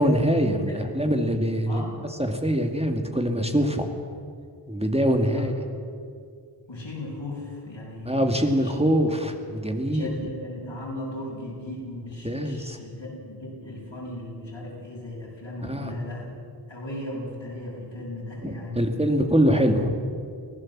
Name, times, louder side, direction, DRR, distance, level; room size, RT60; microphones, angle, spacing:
voice 1, 0.0-1.8 2.2-3.9 4.7-5.5 8.1-10.1 12.2-12.8 15.6-15.9 18.4-20.0, equal, 15° right, 4 dB, 2.3 m, -23 dB
voice 2, 1.7-2.1 5.3-5.5 6.7-8.8 9.9-16.3 16.7-18.9, left 1 dB, 80° left, -3 dB, 7.7 m, -37 dB
24.5 x 16.0 x 7.5 m, 2.3 s
wide cardioid pair, 45°, 45 cm